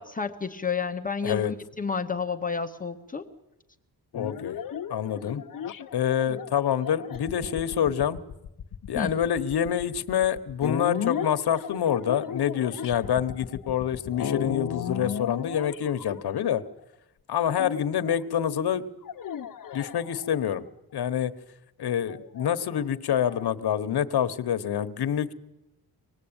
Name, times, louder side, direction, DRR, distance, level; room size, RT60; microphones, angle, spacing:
voice 1, 0.0-3.3 8.9-9.1, left 5 dB, 20° left, 5 dB, 1.1 m, -30 dB
voice 2, 4.1-4.6 4.9-5.4 5.9-8.2 8.9-16.6 17.3-18.9 19.7-20.6 20.9-21.3 21.8-25.3, left 9 dB, 75° left, 10 dB, 1.3 m, -26 dB
sound 1, 4.1-16.8 17.6-18.2 19.0-20.5 22.1-23.5, left 8 dB, 55° left, 1.1 m, -35 dB
25.0 x 19.5 x 8.9 m, 0.91 s
wide cardioid pair, 165°, 39 cm